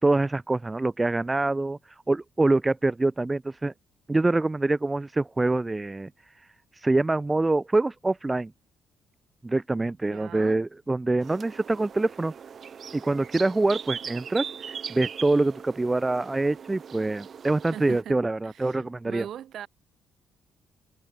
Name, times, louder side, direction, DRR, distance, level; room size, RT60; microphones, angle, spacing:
voice 1, 0.0-1.8 2.1-3.7 4.1-6.1 6.8-8.5 9.4-12.3 12.9-19.3, right 2 dB, 20° right, 0.5 m, -25 dB
voice 2, 10.1-10.6 17.7-18.2 18.4-19.7, right 10 dB, 70° right, 1.5 m, -41 dB
sound 1, 11.2-18.0, right 7 dB, 50° right, 1.2 m, -40 dB
cardioid pair, 90°, 0 cm